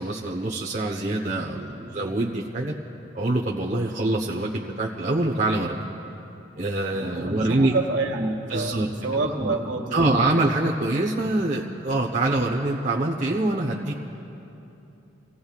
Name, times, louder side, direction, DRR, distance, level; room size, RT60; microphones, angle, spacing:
voice 1, 0.0-2.7 3.1-5.9 6.6-7.8 8.5-8.9 9.1-9.6 9.9-14.0, right 2 dB, 40° right, -1 dB, 0.9 m, -25 dB
voice 2, 1.6-2.0 6.9-10.3, right 2 dB, 70° right, 1 dB, 1.9 m, -28 dB
29.0 x 17.5 x 2.4 m, 2.9 s
head